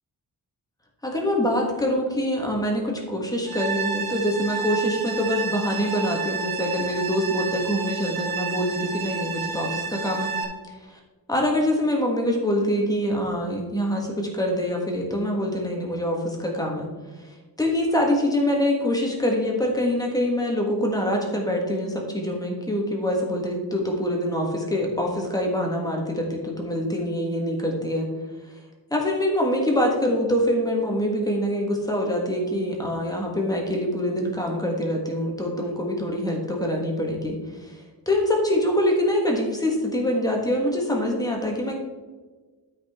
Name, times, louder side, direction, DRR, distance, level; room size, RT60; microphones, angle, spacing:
voice 1, 1.0-10.3 11.3-16.9 17.6-28.1 28.9-37.4 37.6-37.7 38.0-41.8, equal, 10° left, -1 dB, 1.5 m, -25 dB
sound 1, 3.5-10.4, right 4 dB, 60° right, 1.3 m, -30 dB
12.0 x 5.3 x 3.6 m, 1.3 s
wide cardioid pair, 170°, 39 cm